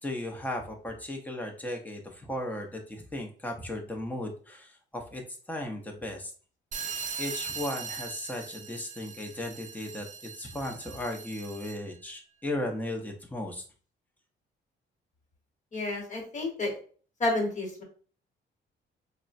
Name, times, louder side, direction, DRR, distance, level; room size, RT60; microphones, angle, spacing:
voice 1, 0.0-5.2 5.5-6.3 7.2-13.6, left 1 dB, 10° left, 2 dB, 0.7 m, -36 dB
sound 1, 6.7-11.9, right 5 dB, 40° right, 0.5 m, -40 dB
voice 2, 15.7-16.8 17.2-17.8, left 2 dB, 35° left, 1 dB, 1.2 m, -30 dB
3.6 x 2.1 x 2.5 m, 0.42 s
cardioid pair, 90°, 20 cm